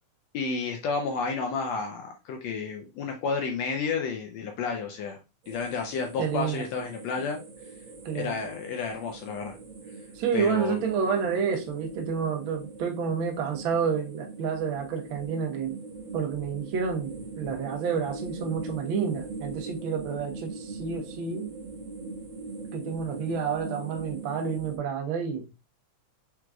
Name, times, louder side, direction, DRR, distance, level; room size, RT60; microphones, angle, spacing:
voice 1, 0.3-5.2 5.5-7.4 8.1-9.5 10.3-10.8, left 5 dB, 75° left, 1.7 m, -31 dB
sound 1, 5.4-24.8, right 3 dB, 45° right, 2.1 m, -41 dB
voice 2, 6.2-6.6 8.0-8.3 10.1-15.8 16.1-21.5 22.7-25.5, right 6 dB, 75° right, 1.1 m, -29 dB
4.9 x 4.6 x 2.3 m
omnidirectional pair, 3.5 m